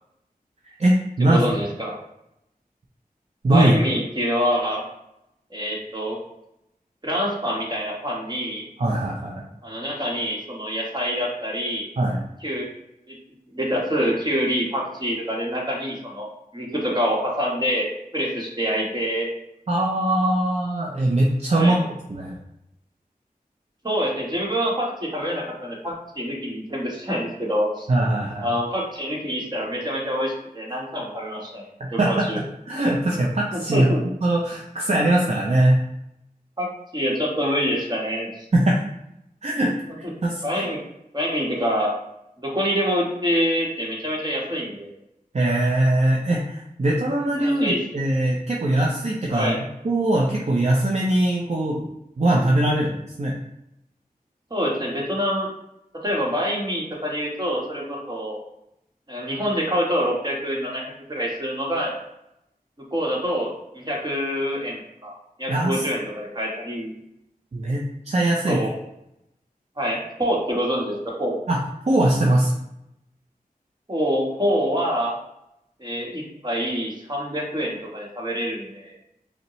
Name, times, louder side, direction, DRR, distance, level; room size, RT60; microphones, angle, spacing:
voice 1, 0.6-1.4 3.4-3.7 8.8-9.4 12.0-12.2 19.7-22.4 27.9-28.6 31.8-33.9 34.2-35.8 38.5-38.8 39.4-40.7 45.3-49.6 49.8-51.9 52.2-53.3 65.5-65.9 67.5-68.6 71.5-72.5, right 1 dB, 45° right, -2 dB, 0.6 m, -21 dB
voice 2, 1.2-2.0 3.5-4.8 5.5-6.2 7.0-8.6 9.6-11.8 12.4-12.7 13.1-13.2 13.5-16.3 16.5-17.9 18.1-19.3 21.5-21.8 23.8-27.9 28.4-32.4 33.7-34.0 36.6-38.4 40.4-40.8 41.1-41.9 42.4-44.9 47.4-47.8 49.3-49.6 54.5-55.5 56.0-58.4 59.1-60.8 61.1-62.0 62.9-67.0 68.5-68.7 69.8-71.4 73.9-75.1 75.8-78.9, equal, 30° right, -2 dB, 1.2 m, -26 dB
5.2 x 2.1 x 3.0 m, 0.83 s
wide cardioid pair, 55°, 15 cm